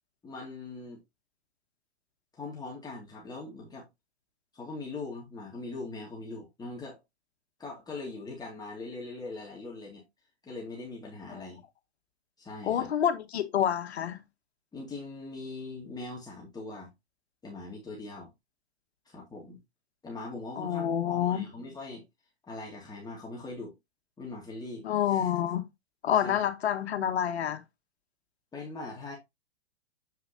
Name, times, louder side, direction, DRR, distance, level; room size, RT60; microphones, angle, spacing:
voice 1, 0.2-1.0 2.3-3.8 4.5-7.0 7.6-10.0 10.4-11.6 12.4-12.9 14.7-16.9 17.4-18.3 19.1-19.6 20.0-22.0 22.5-23.7 24.2-25.5 26.1-26.5 28.5-29.1, left 3 dB, 10° left, 2.2 m, -41 dB
voice 2, 12.6-14.2 20.6-21.4 24.8-25.6 26.0-27.6, left 9 dB, 75° left, 1.6 m, -28 dB
8.1 x 5.8 x 2.7 m
hypercardioid pair, 130°, 33 cm